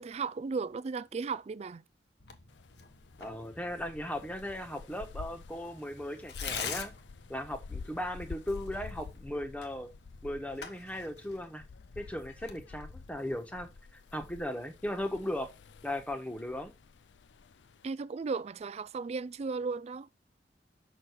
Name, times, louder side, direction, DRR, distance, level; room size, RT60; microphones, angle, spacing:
voice 1, 0.0-1.8 17.8-20.1, right 4 dB, 35° right, 0.3 m, -35 dB
Tearing, 2.2-13.7, left 6 dB, 70° left, 1.2 m, -46 dB
sound 1, 2.5-17.9, left 5 dB, 90° left, 0.5 m, -49 dB
voice 2, 3.2-6.9 7.3-9.9 10.2-11.6 11.9-13.7 14.1-15.5 15.8-16.7, left 1 dB, 10° left, 1.2 m, -37 dB
6.6 x 6.1 x 4.6 m
head